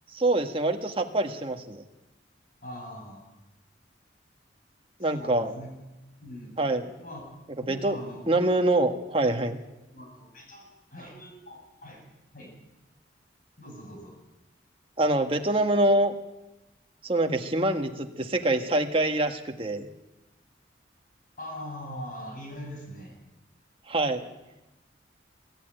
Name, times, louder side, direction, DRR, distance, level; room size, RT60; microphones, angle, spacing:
voice 1, 0.1-1.8 5.0-5.5 6.6-6.9 7.7-8.0 8.3-9.6 15.0-16.1 17.0-19.9 23.9-24.2, right 2 dB, 30° right, 5 dB, 1.5 m, -25 dB
voice 2, 2.6-3.3 5.0-5.7 6.2-6.5 7.0-7.2 7.6-8.2 9.9-12.0 12.3-12.5 13.6-14.1 21.4-23.1, equal, 50° left, 0 dB, 7.9 m, -42 dB
24.0 x 12.5 x 9.1 m, 1.0 s
head